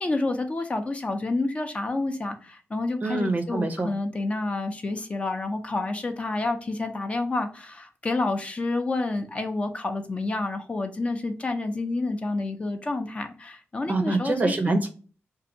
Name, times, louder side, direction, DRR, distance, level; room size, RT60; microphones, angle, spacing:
voice 1, 0.0-14.5, left 2 dB, 25° left, 0.5 m, -29 dB
voice 2, 3.0-3.9 13.9-14.9, right 2 dB, 35° right, 0.6 m, -25 dB
2.6 x 2.5 x 4.0 m
wide cardioid pair, 130°, 5 cm